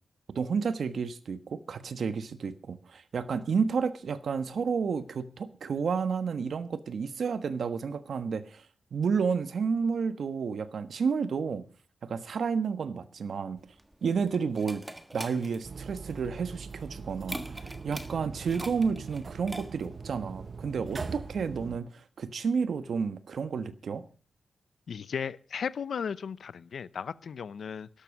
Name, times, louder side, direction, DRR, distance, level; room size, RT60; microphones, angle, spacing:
voice 1, 0.3-8.7 8.9-11.6 12.0-13.6 14.0-14.8 15.1-24.0, right 5 dB, 65° right, 1.2 m, -31 dB
sound 1, 13.6-20.0, right 1 dB, 10° right, 1.4 m, -44 dB
sound 2, 15.6-21.8, right 5 dB, 45° right, 1.1 m, -41 dB
voice 2, 24.9-27.9, left 7 dB, 70° left, 0.7 m, -35 dB
12.5 x 12.0 x 6.0 m
wide cardioid pair, 105°, 0 cm